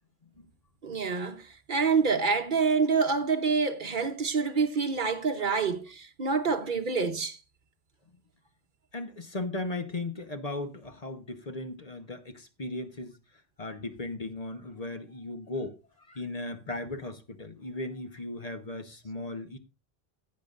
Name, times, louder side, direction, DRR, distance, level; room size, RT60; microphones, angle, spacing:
voice 1, 0.8-7.4, right 5 dB, 55° right, 1.0 m, -27 dB
voice 2, 8.9-13.1 13.6-19.6, left 2 dB, 40° left, 1.0 m, -37 dB
16.0 x 8.6 x 2.5 m
omnidirectional pair, 1.1 m